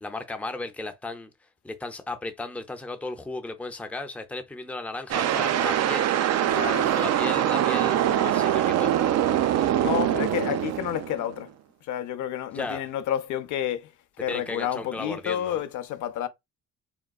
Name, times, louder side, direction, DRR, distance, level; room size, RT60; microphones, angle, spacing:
voice 1, 0.0-1.3 1.6-6.1 6.6-8.9 12.5-12.9 14.3-15.6, left 2 dB, 5° left, 0.5 m, -35 dB
sound 1, 5.1-11.4, right 11 dB, 60° right, 0.4 m, -23 dB
voice 2, 6.5-6.9 9.8-11.5 11.9-13.9 14.2-16.3, left 11 dB, 80° left, 0.5 m, -30 dB
3.7 x 2.2 x 2.3 m
cardioid pair, 90°, 30 cm